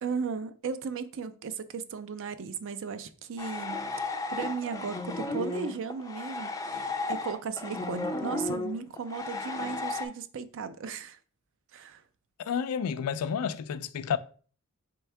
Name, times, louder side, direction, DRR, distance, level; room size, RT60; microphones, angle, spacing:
voice 1, 0.0-3.9 4.3-11.2 11.7-12.0, right 5 dB, 60° right, 0.4 m, -36 dB
sound 1, 3.4-10.1, left 3 dB, 15° left, 0.4 m, -34 dB
voice 2, 12.4-14.2, left 7 dB, 85° left, 0.4 m, -30 dB
4.5 x 3.5 x 3.3 m
head